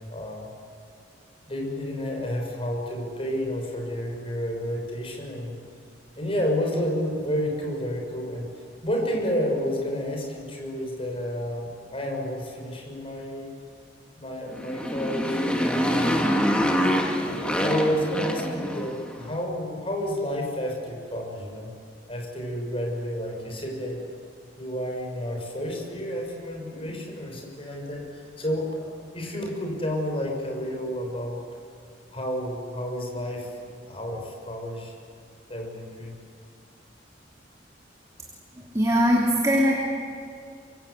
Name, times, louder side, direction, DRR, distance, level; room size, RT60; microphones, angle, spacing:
voice 1, 0.1-0.5 1.5-5.6 6.1-8.5 8.8-13.5 14.1-16.4 17.2-21.7 22.1-24.0 24.6-31.4 32.1-33.5 33.9-34.9 35.5-36.1, equal, 30° left, 1 dB, 6.4 m, -30 dB
Motorcycle, 14.5-19.2, equal, 5° left, 2.2 m, -25 dB
voice 2, 38.6-39.7, equal, 15° right, -2 dB, 3.0 m, -21 dB
25.5 x 23.0 x 8.4 m, 2.3 s
head